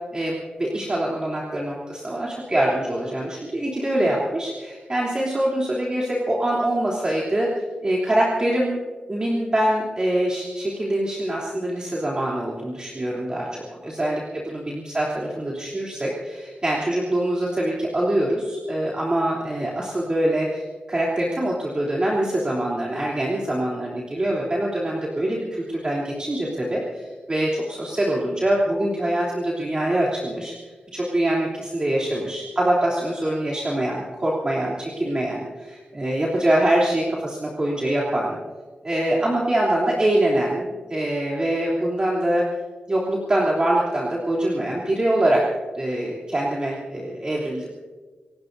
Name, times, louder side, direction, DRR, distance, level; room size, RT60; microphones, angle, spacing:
voice 1, 0.1-8.8 9.1-30.5 30.9-38.4 38.8-42.4 42.9-45.5 45.7-47.7, right 1 dB, 30° right, -5 dB, 3.2 m, -24 dB
29.0 x 17.5 x 2.7 m, 1.4 s
wide cardioid pair, 125°, 3 cm